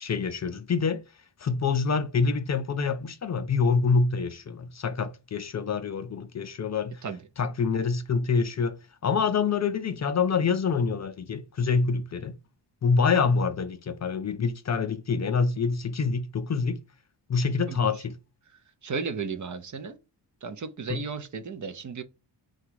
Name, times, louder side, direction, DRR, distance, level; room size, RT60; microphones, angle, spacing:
voice 1, 0.0-1.0 1.4-7.0 7.4-8.8 9.0-12.3 12.8-16.8 17.3-18.2 20.9-21.0, left 5 dB, 40° left, 0.4 m, -26 dB
voice 2, 17.7-18.0 18.8-20.0 20.4-22.0, right 5 dB, 45° right, 0.5 m, -34 dB
3.8 x 2.3 x 4.5 m
wide cardioid pair, 155°, 44 cm